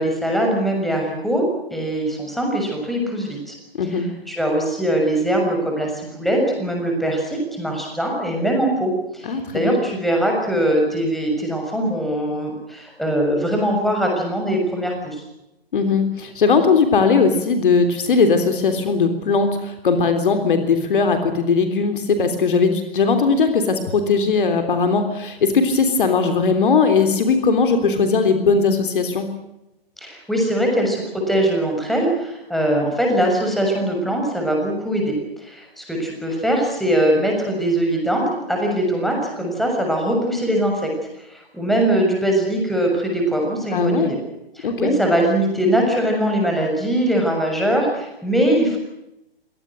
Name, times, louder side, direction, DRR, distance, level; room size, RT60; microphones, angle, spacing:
voice 1, 0.0-1.4 1.7-3.5 3.9-5.9 6.2-15.2 30.0-35.1 35.4-40.9 41.3-44.2 44.6-48.8, right 1 dB, ahead, 1 dB, 6.6 m, -21 dB
voice 2, 9.3-9.8 15.7-29.3 43.7-44.1 44.6-44.9, left 4 dB, 60° left, 7 dB, 3.5 m, -19 dB
25.0 x 18.5 x 7.8 m, 0.88 s
figure-of-eight pair, 120°, 30 cm